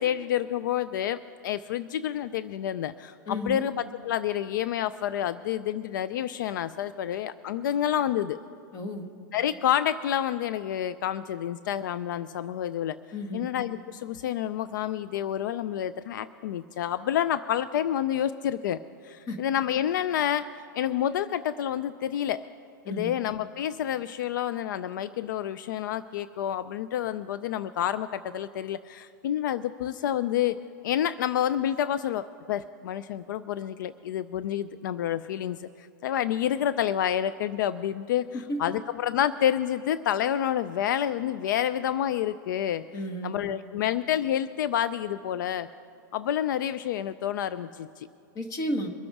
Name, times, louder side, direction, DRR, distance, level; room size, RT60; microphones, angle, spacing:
voice 1, 0.0-8.4 9.3-13.0 13.3-22.4 22.9-42.8 43.2-45.7 46.1-48.1, left 10 dB, 70° left, 15 dB, 0.4 m, -29 dB
voice 2, 3.3-3.6 8.7-9.1 13.1-13.5 19.3-19.4 22.8-23.1 42.9-43.3 48.3-48.9, left 1 dB, 30° left, 8 dB, 1.4 m, -32 dB
23.0 x 7.8 x 4.7 m, 2.4 s
hypercardioid pair, 130°, 11 cm